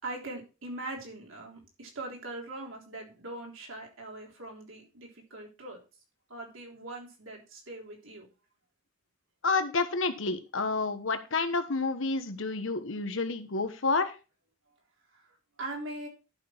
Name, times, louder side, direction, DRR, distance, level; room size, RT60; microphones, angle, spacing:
voice 1, 0.0-5.8 6.3-8.3 14.7-14.8 15.1-16.1, right 2 dB, 70° right, 0 dB, 3.5 m, -41 dB
voice 2, 9.4-14.2, left 3 dB, 65° left, 10 dB, 1.2 m, -29 dB
11.0 x 6.1 x 4.5 m, 0.32 s
head